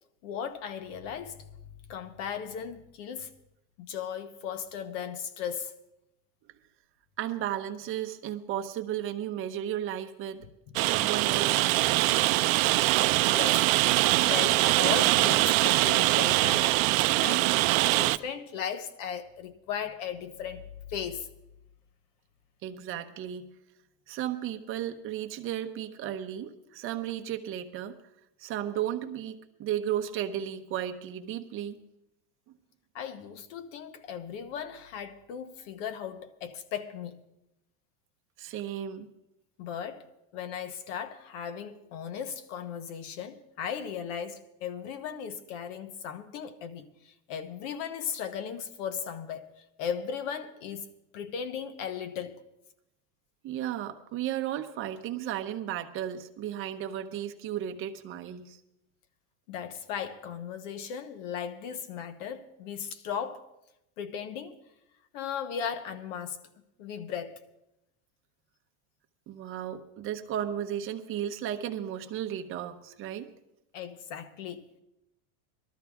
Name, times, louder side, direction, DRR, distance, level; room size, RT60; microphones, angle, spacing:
voice 1, 0.2-1.5 1.9-3.3 3.8-5.7 10.7-10.9 12.7-12.8 13.3-13.7 14.2-16.8 17.2-17.5 18.0-20.6 20.9-21.3 32.9-37.2 39.6-40.1 40.3-52.4 59.5-63.4 64.0-64.6 65.1-66.4 66.8-67.4 73.7-74.7, left 8 dB, 65° left, 1.2 m, -37 dB
voice 2, 7.2-10.4 10.8-12.4 22.6-23.5 24.1-28.0 28.4-31.8 38.4-39.1 53.4-58.6 69.3-73.3, right 11 dB, 30° right, 0.8 m, -34 dB
Rain, 10.8-18.2, right 19 dB, 75° right, 0.6 m, -23 dB
20.0 x 13.0 x 3.5 m
supercardioid pair, 165°, 41 cm